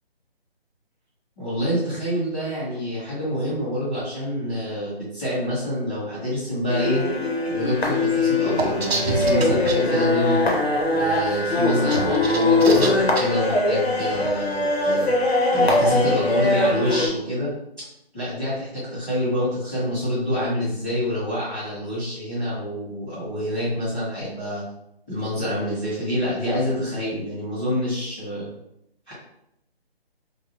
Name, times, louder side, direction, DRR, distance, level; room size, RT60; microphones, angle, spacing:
voice 1, 1.4-7.0 7.5-10.5 10.9-15.1 15.5-17.5 18.1-24.6 25.1-28.5 29.1-29.2, equal, 10° left, -18 dB, 0.6 m, -27 dB
sound 1, 6.7-17.1, left 2 dB, 80° left, 0.8 m, -21 dB
sound 2, 8.6-9.8 11.7-13.2, right 3 dB, 75° right, 0.6 m, -27 dB
3.1 x 2.2 x 2.9 m, 0.80 s
hypercardioid pair, 165°, 31 cm